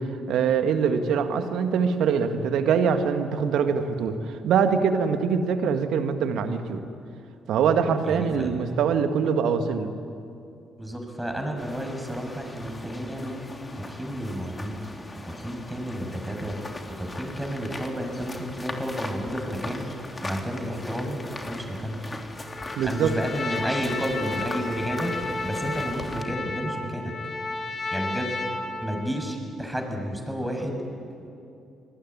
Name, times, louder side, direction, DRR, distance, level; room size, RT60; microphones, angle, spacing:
voice 1, 0.0-6.8 7.5-9.9 22.8-23.1, right 6 dB, 65° right, 8 dB, 1.9 m, -23 dB
voice 2, 8.0-8.5 10.8-13.4 13.8-14.8 15.2-16.6 16.9-19.9 20.2-21.2 21.4-22.0 22.8-25.2 25.4-27.1 27.9-28.3 28.8-30.8, equal, 5° right, 3 dB, 7.2 m, -31 dB
sound 1, 11.6-26.2, left 2 dB, 25° left, 3.5 m, -39 dB
Trumpet, 22.5-29.3, left 3 dB, 45° left, 4.1 m, -33 dB
26.5 x 20.0 x 9.8 m, 2.6 s
hypercardioid pair, 45°, 0 cm